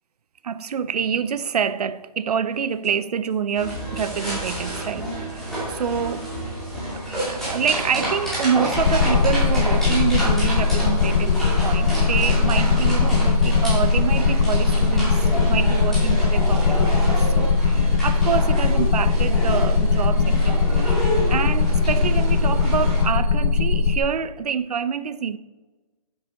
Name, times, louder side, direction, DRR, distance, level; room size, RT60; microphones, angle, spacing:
voice 1, 0.4-6.3 6.9-21.0 21.3-25.4, right 7 dB, 75° right, 0.7 m, -27 dB
sound 1, 2.5-2.6 2.8-2.9 3.3-3.4 3.7-4.2 4.5-4.9 5.3-5.4 5.7-7.0 7.7-7.8 8.3-8.9 9.2-9.5 9.9-10.2 10.7-11.5 12.5-12.6, left 2 dB, 45° left, 1.6 m, -40 dB
sound 2, 3.5-23.0, right 1 dB, ahead, 2.6 m, -29 dB
sound 3, 8.8-24.0, left 5 dB, 65° left, 0.9 m, -20 dB
10.0 x 7.4 x 4.1 m
hypercardioid pair, 170°, 20 cm